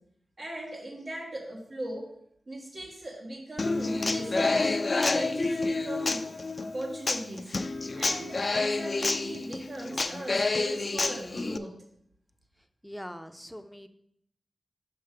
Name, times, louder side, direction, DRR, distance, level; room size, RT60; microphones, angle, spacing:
voice 1, 0.4-2.1 2.5-4.8 5.1-7.5 7.9-11.7, right 1 dB, 65° right, -3 dB, 1.5 m, -39 dB
Human voice / Acoustic guitar, 3.6-11.6, left 3 dB, 45° left, 0.4 m, -29 dB
voice 2, 12.8-13.9, equal, ahead, 8 dB, 0.6 m, -42 dB
5.8 x 5.5 x 4.9 m, 0.70 s
cardioid pair, 60°, 0 cm